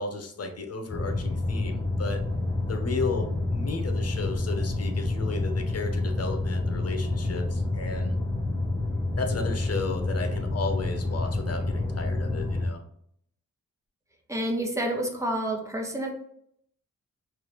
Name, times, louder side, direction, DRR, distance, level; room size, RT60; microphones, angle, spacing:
voice 1, 0.0-2.2 2.7-8.2 9.2-12.8, left 4 dB, 50° left, 5 dB, 0.8 m, -34 dB
sound 1, 0.9-12.7, left 2 dB, 10° left, 0.9 m, -28 dB
voice 2, 14.3-16.1, right 1 dB, 10° right, 1 dB, 1.1 m, -29 dB
4.7 x 2.5 x 3.1 m, 0.68 s
cardioid pair, 65°, 32 cm